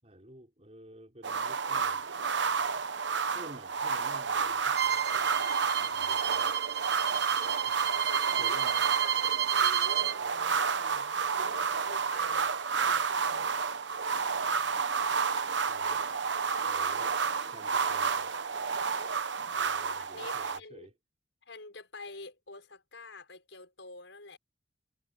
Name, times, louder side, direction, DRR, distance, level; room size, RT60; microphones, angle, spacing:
voice 1, 0.0-2.1 3.3-5.3 5.8-6.5 8.4-8.8 15.6-16.1 16.6-17.1 17.5-18.3 19.5-20.9, right 1 dB, 35° right, 5.2 m, -51 dB
sound 1, 1.2-20.6, right 5 dB, 75° right, 0.9 m, -30 dB
Bowed string instrument, 4.7-10.2, right 11 dB, 60° right, 1.6 m, -31 dB
voice 2, 7.8-8.6 8.9-12.4 12.8-13.5 20.1-20.9 21.4-24.4, left 3 dB, 85° left, 5.9 m, -48 dB
head